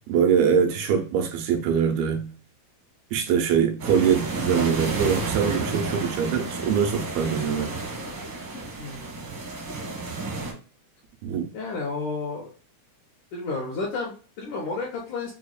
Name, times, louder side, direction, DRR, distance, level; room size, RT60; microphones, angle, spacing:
voice 1, 0.1-2.3 3.1-7.7 11.2-11.5, right 7 dB, 90° right, 2.6 m, -23 dB
sound 1, 3.8-10.5, right 3 dB, 70° right, 1.2 m, -31 dB
voice 2, 8.8-9.2 11.5-12.5 13.3-15.3, left 3 dB, 75° left, 1.9 m, -31 dB
6.0 x 2.1 x 2.3 m
omnidirectional pair, 4.2 m